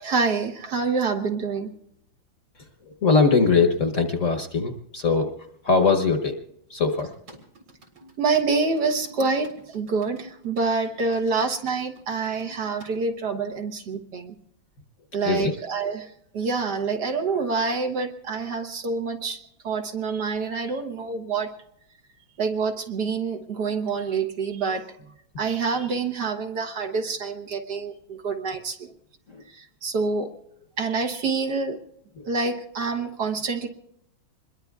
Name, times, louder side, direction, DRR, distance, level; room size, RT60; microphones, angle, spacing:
voice 1, 0.0-1.7 8.2-14.3 15.1-21.5 22.4-24.9 25.4-28.9 29.5-30.3 30.8-31.8 32.2-33.7, right 4 dB, 60° right, 4 dB, 1.7 m, -27 dB
sound 1, 1.6-2.0 7.0-13.1, right 1 dB, 75° right, 3.9 m, -49 dB
voice 2, 2.8-5.3 5.6-6.4 6.7-7.4 15.2-15.5 29.3-29.4 32.2-32.3, left 4 dB, 45° left, 6 dB, 1.2 m, -21 dB
26.5 x 21.5 x 2.4 m, 0.76 s
omnidirectional pair, 2.2 m